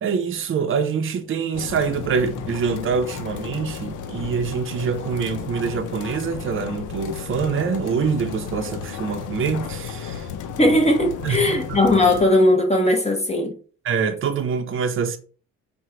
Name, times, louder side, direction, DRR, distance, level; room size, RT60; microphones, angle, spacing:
voice 1, 0.0-10.6 11.2-11.8 13.8-15.2, right 6 dB, 45° right, 0.6 m, -25 dB
sound 1, 1.5-12.3, left 7 dB, 80° left, 0.6 m, -33 dB
voice 2, 10.6-13.5, left 1 dB, 20° left, 0.9 m, -18 dB
4.3 x 2.2 x 3.7 m
cardioid pair, 90°, 30 cm